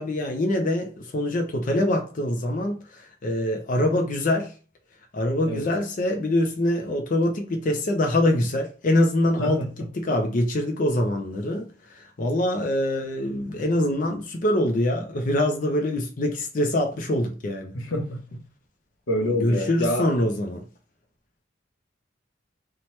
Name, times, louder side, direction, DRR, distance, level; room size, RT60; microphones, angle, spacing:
voice 1, 0.0-4.5 5.1-9.7 9.9-17.7 19.4-20.6, left 1 dB, 40° left, 0.4 m, -24 dB
voice 2, 17.7-18.2 19.1-20.1, left 1 dB, 75° left, 0.8 m, -26 dB
2.8 x 2.1 x 3.0 m
head